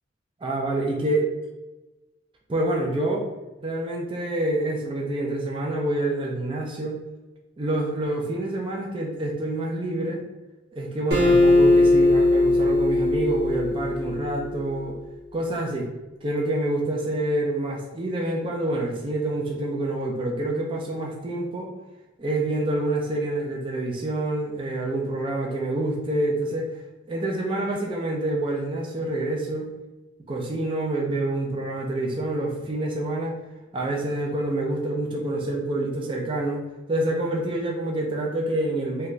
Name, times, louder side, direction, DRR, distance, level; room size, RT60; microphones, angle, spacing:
voice 1, 0.4-1.3 2.5-3.3 3.6-7.0 7.6-10.2 10.7-15.0 15.3-15.9 16.2-21.7 22.2-26.7 27.1-29.7 30.3-33.4 33.7-36.6 36.9-39.1, right 1 dB, 25° right, -1 dB, 0.3 m, -27 dB
Acoustic guitar, 11.1-14.5, left 2 dB, 55° right, 1.0 m, -19 dB
3.0 x 2.2 x 2.4 m, 1.1 s
head